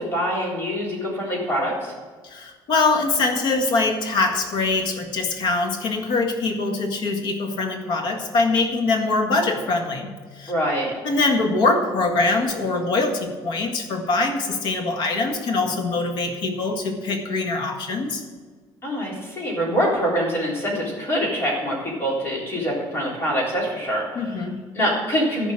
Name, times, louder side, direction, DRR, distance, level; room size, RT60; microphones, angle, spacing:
voice 1, 0.0-1.9 10.5-10.9 18.8-24.5 24.7-25.5, equal, 30° left, -3 dB, 3.7 m, -24 dB
voice 2, 2.2-10.1 10.4-10.5 11.0-18.2 24.2-24.6, left 3 dB, 70° left, 4 dB, 1.8 m, -23 dB
14.5 x 5.3 x 7.6 m, 1.5 s
cardioid pair, 160°, 8 cm